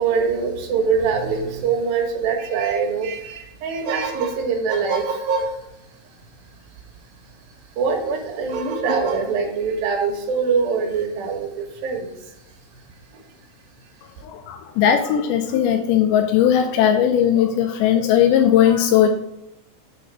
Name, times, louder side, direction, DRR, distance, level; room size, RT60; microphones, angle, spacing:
voice 1, 0.0-5.6 7.8-12.1 13.1-13.2, right 5 dB, 85° right, 3 dB, 3.0 m, -23 dB
voice 2, 14.2-19.1, left 9 dB, 80° left, 4 dB, 1.9 m, -18 dB
6.6 x 4.4 x 6.1 m, 0.84 s
omnidirectional pair, 4.0 m